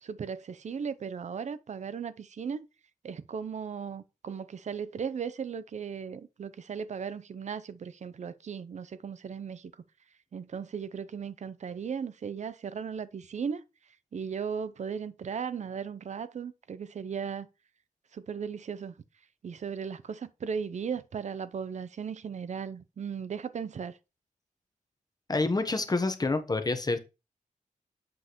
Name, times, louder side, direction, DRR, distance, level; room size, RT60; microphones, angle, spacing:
voice 1, 0.0-2.7 3.0-9.7 10.3-13.6 14.1-17.5 18.1-18.9 19.4-24.0, right 6 dB, 55° right, 0.6 m, -36 dB
voice 2, 25.3-27.0, left 3 dB, 30° left, 1.0 m, -27 dB
7.9 x 5.3 x 3.0 m
wide cardioid pair, 105°, 14 cm